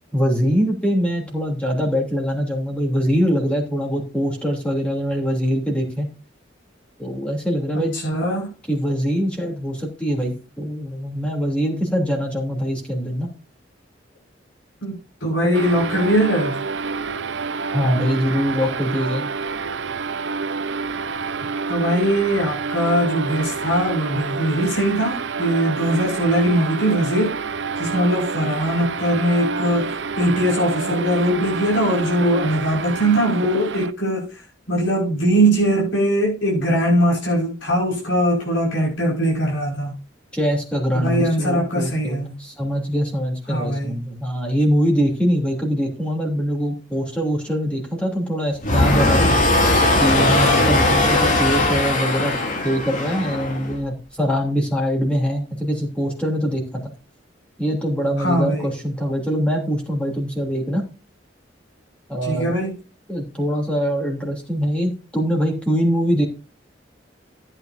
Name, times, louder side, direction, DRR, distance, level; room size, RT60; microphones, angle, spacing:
voice 1, 0.1-6.1 7.0-7.9 8.7-13.3 17.7-19.3 40.3-49.3 50.0-52.3 52.6-56.8 57.6-60.8 62.1-62.5 63.1-66.3, equal, 5° left, 3.1 m, -23 dB
voice 2, 7.9-8.5 14.8-16.6 21.7-27.4 27.8-40.0 40.9-42.4 43.5-43.9 58.2-58.7 62.2-62.8, right 1 dB, 75° left, 5.3 m, -21 dB
sound 1, 15.5-33.9, right 5 dB, 70° right, 0.8 m, -28 dB
sound 2, 48.6-53.8, left 1 dB, 45° left, 2.7 m, -19 dB
14.5 x 9.0 x 2.7 m
head